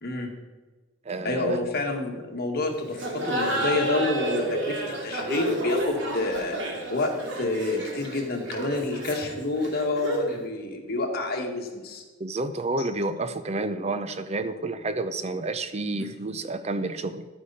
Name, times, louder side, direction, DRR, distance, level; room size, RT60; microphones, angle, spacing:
voice 1, 0.0-0.3 1.2-6.6 6.9-12.0 12.8-12.9 16.0-16.1, left 2 dB, 50° left, 2 dB, 1.9 m, -28 dB
voice 2, 1.1-1.7 12.2-17.3, right 2 dB, 35° right, 11 dB, 0.6 m, -30 dB
Laughter, 2.9-10.4, right 1 dB, 65° right, 2.4 m, -31 dB
12.0 x 10.0 x 4.2 m, 1.3 s
head